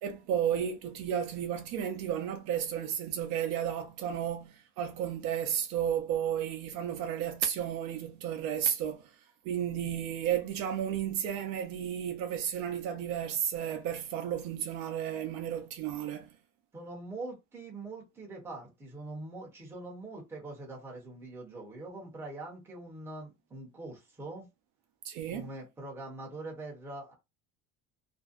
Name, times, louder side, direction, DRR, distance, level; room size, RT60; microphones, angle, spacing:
voice 1, 0.0-9.1 9.4-16.3 25.0-25.5, right 9 dB, 60° right, 0.5 m, -33 dB
voice 2, 16.7-24.5 25.3-27.1, right 2 dB, 5° right, 0.6 m, -43 dB
2.6 x 2.1 x 2.4 m
cardioid pair, 175°, 32 cm